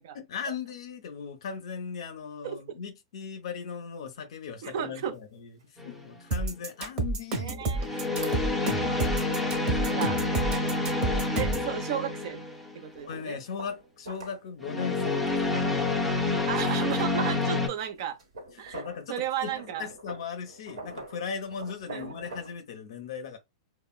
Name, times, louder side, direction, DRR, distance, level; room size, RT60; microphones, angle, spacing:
voice 1, 0.1-5.2 5.9-8.1 9.8-9.9 13.1-15.2 15.5-15.8 18.7-19.1 19.4-23.4, left 6 dB, 70° left, 0.4 m, -38 dB
voice 2, 4.6-5.1 7.3-8.0 9.8-10.2 11.4-12.4 12.7-13.4 16.5-18.2 18.6-18.8 19.1-19.9 21.9-22.3, right 9 dB, 60° right, 0.4 m, -34 dB
sound 1, 5.0-5.1 5.6-5.7 8.2-8.4 12.9-19.1 19.4-22.6, right 2 dB, 90° right, 1.0 m, -44 dB
sound 2, 5.8-6.1 7.8-12.8 14.6-17.7, left 3 dB, ahead, 0.5 m, -28 dB
sound 3, 6.3-11.7, right 3 dB, 35° right, 0.8 m, -29 dB
2.9 x 2.0 x 2.3 m
hypercardioid pair, 130°, 3 cm